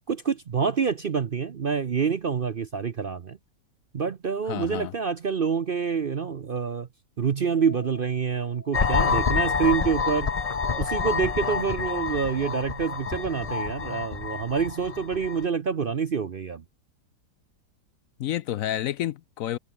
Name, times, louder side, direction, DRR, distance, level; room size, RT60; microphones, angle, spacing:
voice 1, 0.1-3.4 3.9-6.9 7.2-10.3 10.8-16.6, right 6 dB, 50° right, 0.6 m, -27 dB
voice 2, 4.5-4.9 18.2-19.6, left 12 dB, 70° left, 0.8 m, -29 dB
Keyboard (musical), 7.5-10.0, left 3 dB, 85° left, 5.7 m, -49 dB
sound 1, 8.7-15.4, left 5 dB, 35° left, 0.6 m, -27 dB
omnidirectional pair, 1.9 m